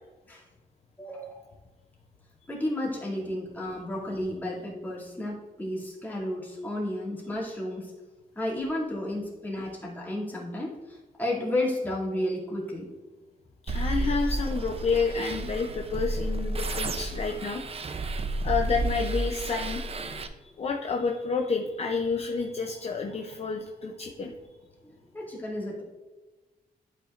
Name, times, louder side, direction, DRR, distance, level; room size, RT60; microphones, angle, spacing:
voice 1, 1.0-1.5 2.5-7.9 8.4-12.9 14.0-14.2 24.8-25.8, left 1 dB, 10° left, -5 dB, 2.4 m, -32 dB
voice 2, 13.6-17.6 18.4-19.8 20.4-24.3, left 4 dB, 40° left, 2 dB, 0.6 m, -29 dB
sound 1, 13.7-20.3, right 2 dB, 35° right, 0.6 m, -31 dB
11.5 x 5.0 x 2.5 m, 1.2 s
wide cardioid pair, 135°, 16 cm